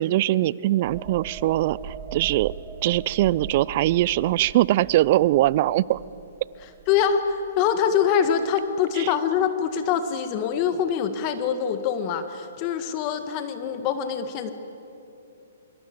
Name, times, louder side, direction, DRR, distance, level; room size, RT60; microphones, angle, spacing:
voice 1, 0.0-2.5 2.8-6.0 9.0-9.1, right 15 dB, 45° right, 22 dB, 0.5 m, -22 dB
sound 1, 0.8-8.3 8.6-8.8, right 8 dB, 30° right, 2.7 m, -41 dB
voice 2, 6.9-14.5, left 8 dB, 35° left, 9 dB, 1.7 m, -24 dB
24.5 x 24.5 x 7.9 m, 2.9 s
hypercardioid pair, 130°, 0 cm